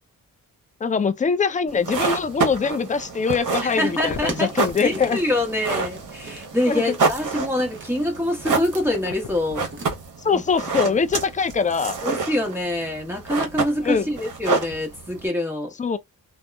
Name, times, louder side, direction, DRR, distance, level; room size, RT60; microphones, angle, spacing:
voice 1, 0.8-5.2 6.7-7.0 10.2-12.0 13.8-14.1 15.8-16.0, left 5 dB, 20° left, 0.4 m, -23 dB
sound 1, 1.7-15.3, right 4 dB, 60° right, 0.8 m, -29 dB
voice 2, 3.6-4.5 4.8-9.7 10.3-10.4 12.0-15.7, left 1 dB, 5° right, 1.1 m, -25 dB
sound 2, 3.7-9.9, right 2 dB, 35° right, 1.0 m, -42 dB
sound 3, 3.9-5.6 6.1-6.2 8.8-10.0 10.3-10.4 13.9-14.4 14.7-14.9, left 6 dB, 75° left, 0.6 m, -36 dB
2.8 x 2.1 x 2.2 m
cardioid pair, 65°, 36 cm